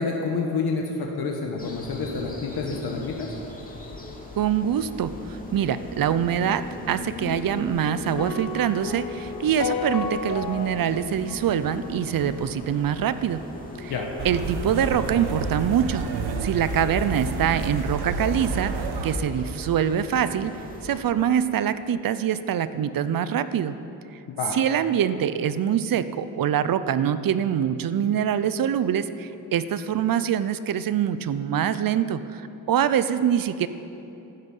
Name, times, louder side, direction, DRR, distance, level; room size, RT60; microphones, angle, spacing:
voice 1, 0.0-3.3 13.9-14.1 24.4-24.6, left 4 dB, 85° left, 1 dB, 1.4 m, -28 dB
sound 1, 1.6-21.0, left 2 dB, 20° left, 2.6 m, -39 dB
voice 2, 4.4-13.4 13.8-13.9 14.2-16.0 16.4-20.5 20.8-23.8 24.5-33.7, right 9 dB, 65° right, 13 dB, 0.7 m, -24 dB
sound 2, 8.2-12.5, left 4 dB, 60° left, 1.4 m, -33 dB
sound 3, 14.2-19.2, right 3 dB, 85° right, 1.3 m, -30 dB
14.5 x 12.5 x 5.5 m, 2.9 s
cardioid pair, 80°, 38 cm